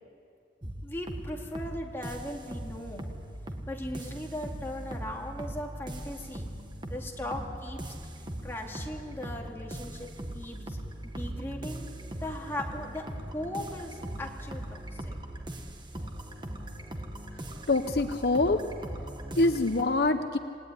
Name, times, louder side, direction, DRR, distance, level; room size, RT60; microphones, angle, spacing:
sound 1, 0.6-19.8, right 1 dB, 25° right, 1.6 m, -40 dB
voice 1, 0.8-3.1 3.7-6.5 6.9-7.9 8.4-10.1 10.3-10.8 11.1-11.9 12.2-14.8 15.0-15.1, left 1 dB, 15° left, 0 dB, 2.6 m, -38 dB
voice 2, 17.7-18.6 19.4-20.4, left 2 dB, 60° left, 8 dB, 0.8 m, -25 dB
27.5 x 18.0 x 9.9 m, 2.4 s
head